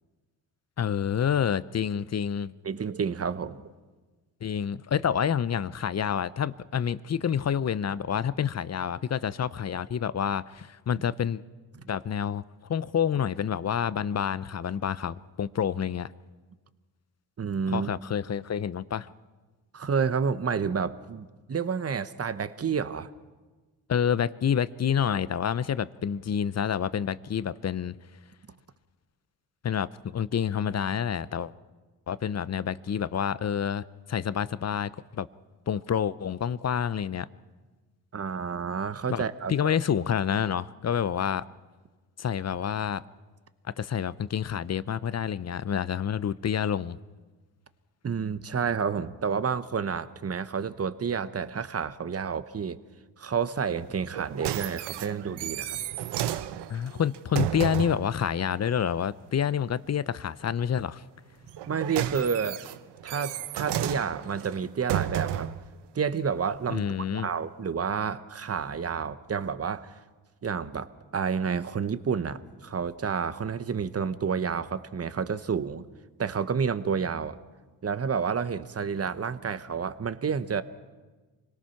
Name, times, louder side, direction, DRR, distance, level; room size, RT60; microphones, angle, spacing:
voice 1, 0.8-2.5 4.4-11.4 11.9-12.4 12.7-16.1 17.7-19.1 23.9-28.0 29.6-31.5 32.1-35.3 35.7-37.3 39.1-39.2 39.5-41.5 42.2-43.0 43.8-47.0 56.7-61.0 66.7-67.3, left 8 dB, 40° left, 17 dB, 0.7 m, -28 dB
voice 2, 2.6-3.6 17.4-17.9 19.7-23.1 38.1-39.8 48.0-52.8 53.2-55.8 61.7-62.6 63.0-65.5 65.9-66.8 67.1-69.9 70.4-70.9 71.1-75.9 76.2-77.4 77.8-80.6, right 6 dB, 35° right, 14 dB, 1.1 m, -30 dB
sound 1, 54.0-58.1 61.5-65.7 66.4-66.5, right 11 dB, 80° right, 0.8 m, -32 dB
25.5 x 18.0 x 5.9 m, 1.3 s
supercardioid pair, 60°, 41 cm